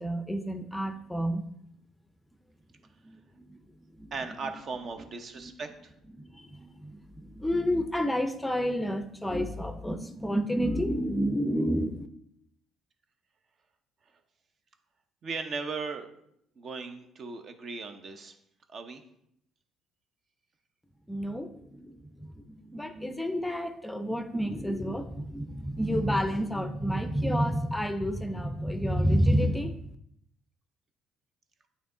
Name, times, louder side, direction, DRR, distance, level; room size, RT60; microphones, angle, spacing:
voice 1, 0.0-1.4 3.0-3.6 4.0-4.1 4.4-4.5 5.4-5.5 6.1-12.1 21.1-29.8, equal, 5° left, 8 dB, 0.5 m, -30 dB
voice 2, 4.1-5.9 15.2-16.1 16.6-18.3 18.7-19.0, right 4 dB, 50° right, 6 dB, 0.7 m, -37 dB
8.5 x 2.9 x 3.8 m, 0.73 s
cardioid pair, 85°, 0 cm